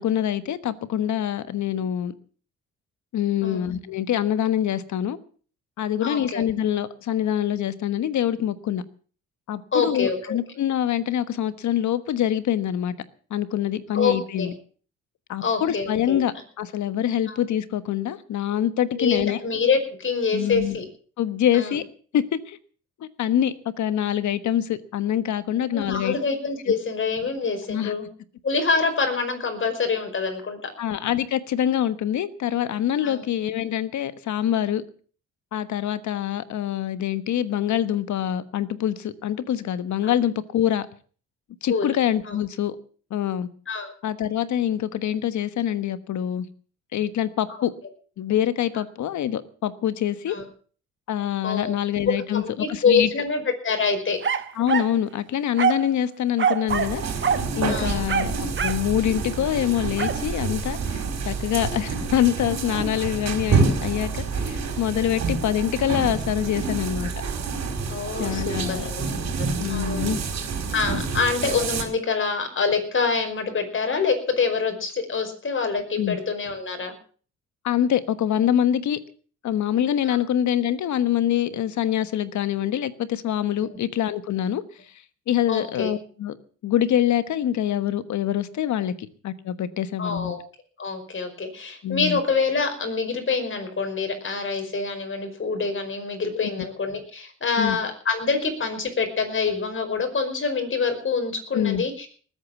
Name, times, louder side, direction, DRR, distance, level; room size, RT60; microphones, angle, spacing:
voice 1, 0.0-2.1 3.1-5.2 5.8-8.8 9.5-12.9 13.3-14.5 15.3-19.4 20.3-20.8 21.2-21.8 22.1-22.6 23.2-26.1 27.7-27.9 30.8-34.8 35.5-40.9 41.6-42.7 43.1-43.5 44.0-46.5 46.9-47.7 48.2-50.4 51.1-53.1 54.5-67.1 68.2-68.9 69.2-69.3 69.6-70.2 70.9-71.0 76.0-76.2 77.6-79.0 79.4-84.6 85.3-86.4 86.6-90.3 91.8-92.2 96.3-96.5 97.6-97.8 101.5-101.8, left 10 dB, 70° left, 13 dB, 1.4 m, -25 dB
voice 2, 6.0-6.4 9.7-10.4 13.9-14.5 15.4-16.2 17.3-17.4 19.0-20.8 21.5-21.8 25.7-28.1 28.4-30.7 33.0-33.3 40.0-40.1 41.7-41.9 42.3-42.4 43.7-43.9 50.3-50.5 51.4-51.7 52.3-54.2 57.7-58.1 67.9-69.0 69.4-70.1 70.7-76.9 80.1-80.2 85.5-85.9 90.0-90.4 90.8-102.1, left 5 dB, 40° left, 6 dB, 5.3 m, -26 dB
sound 1, 54.2-55.0 55.6-55.9 56.4-57.0 57.2-57.5 58.1-58.9 60.0-60.2, right 7 dB, 40° right, 1.6 m, -24 dB
sound 2, 56.7-71.8, right 4 dB, 60° right, 4.6 m, -28 dB
19.5 x 8.9 x 7.2 m, 0.43 s
cardioid pair, 90°, 30 cm